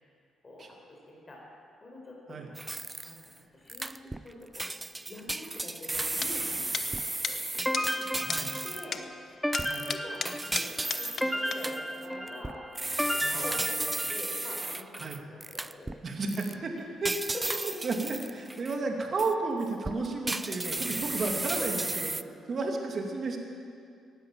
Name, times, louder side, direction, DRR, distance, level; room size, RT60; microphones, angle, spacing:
voice 1, 0.4-2.7 3.0-3.2 3.5-8.3 8.6-9.0 9.3-9.6 9.9-12.6 13.0-16.0 17.3-17.7 20.4-20.6 21.6-21.7, left 1 dB, 30° left, -2 dB, 4.6 m, -46 dB
sound 1, 2.6-3.3 3.7-4.3 4.5-9.0 9.5-16.0 16.3-16.5 17.0-18.8 19.2-19.3 19.8-22.2, right 2 dB, 15° right, 0.4 m, -34 dB
sound 2, 6.2-6.3 6.7-6.9 7.2-7.4 7.7-7.9 8.3-8.4 8.9-9.0 9.5-11.3 11.5-11.6, left 6 dB, 50° left, 0.8 m, -33 dB
sound 3, 7.7-14.6, equal, ahead, 0.8 m, -34 dB
voice 2, 8.2-8.5 9.5-9.9 13.2-13.4 15.0-15.2 16.0-17.2 17.8-21.8 22.5-23.4, right 3 dB, 45° right, 2 dB, 2.4 m, -32 dB
17.5 x 11.0 x 7.5 m, 2.3 s
cardioid pair, 90°, 0 cm